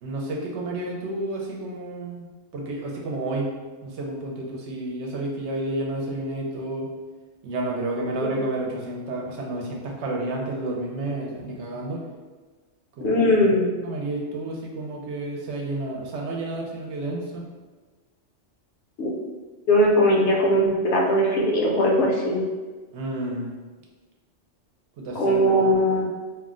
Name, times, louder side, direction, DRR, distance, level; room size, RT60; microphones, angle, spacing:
voice 1, 0.0-2.2 2.5-3.6 3.8-6.9 7.4-12.0 13.0-13.6 13.8-17.4 22.9-23.5 25.0-25.7, right 2 dB, 75° right, -1 dB, 0.9 m, -30 dB
voice 2, 13.0-13.7 19.0-19.1 19.7-22.4 25.1-26.0, equal, 70° left, -2 dB, 0.9 m, -20 dB
2.5 x 2.0 x 3.6 m, 1.3 s
omnidirectional pair, 1.2 m